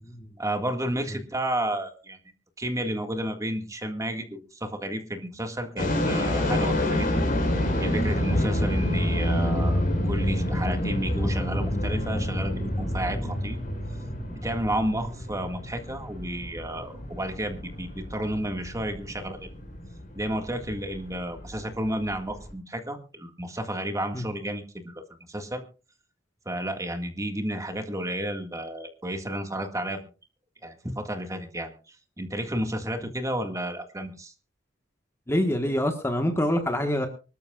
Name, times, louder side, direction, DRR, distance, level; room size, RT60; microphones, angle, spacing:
voice 1, 0.4-2.2 2.6-7.3 7.8-13.6 14.3-19.5 20.1-25.0 25.3-25.6 26.5-30.0 30.6-34.3, right 1 dB, 15° right, 5 dB, 1.9 m, -32 dB
sound 1, 5.8-22.5, left 1 dB, 50° left, 5.2 m, -28 dB
voice 2, 35.3-37.1, left 1 dB, 15° left, 5 dB, 1.4 m, -25 dB
24.5 x 13.0 x 2.4 m, 0.33 s
head